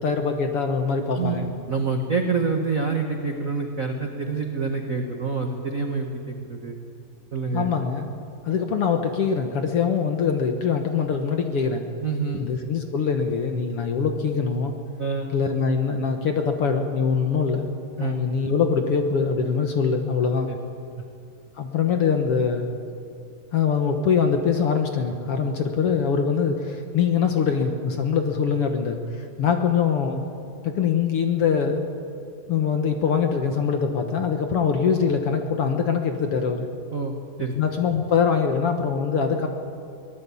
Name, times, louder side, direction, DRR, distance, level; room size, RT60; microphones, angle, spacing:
voice 1, 0.0-1.5 7.5-8.1 8.5-11.8 12.4-14.7 15.3-17.7 18.0-20.5 21.6-22.7 23.5-30.2 30.6-31.8 32.5-36.7 37.6-39.5, left 6 dB, 55° left, 5 dB, 1.8 m, -23 dB
voice 2, 1.7-6.8 7.3-7.7 12.0-12.4 15.0-15.3 18.0-18.1 20.5-20.6 36.9-37.1 37.4-37.5, right 4 dB, 50° right, 3 dB, 0.9 m, -27 dB
23.0 x 18.5 x 8.5 m, 2.5 s
omnidirectional pair, 3.8 m